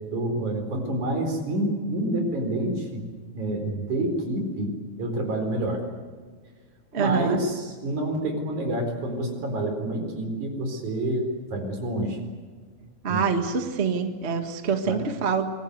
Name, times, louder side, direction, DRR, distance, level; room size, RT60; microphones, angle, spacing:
voice 1, 0.1-3.0 3.3-5.9 7.0-12.2 13.1-13.2 14.8-15.0, right 1 dB, 80° right, 4 dB, 5.7 m, -28 dB
voice 2, 6.9-7.4 13.0-15.5, right 5 dB, 30° right, 6 dB, 1.5 m, -25 dB
26.5 x 21.5 x 8.1 m, 1.5 s
omnidirectional pair, 3.4 m